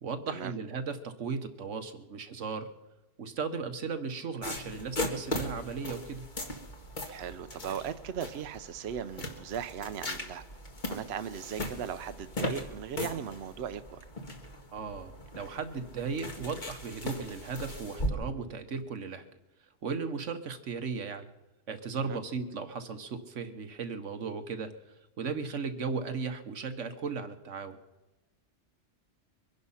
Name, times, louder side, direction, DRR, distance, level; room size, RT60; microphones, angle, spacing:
voice 1, 0.0-2.7 3.2-6.3 14.7-19.2 19.8-21.3 21.7-27.8, right 5 dB, 90° right, 8 dB, 1.5 m, -36 dB
sound 1, 4.4-18.1, left 1 dB, 40° left, 1.7 m, -38 dB
voice 2, 7.1-10.4 10.9-14.0 22.0-22.2, right 8 dB, 65° right, 11 dB, 0.9 m, -38 dB
22.5 x 10.5 x 5.6 m, 1.1 s
omnidirectional pair, 1.2 m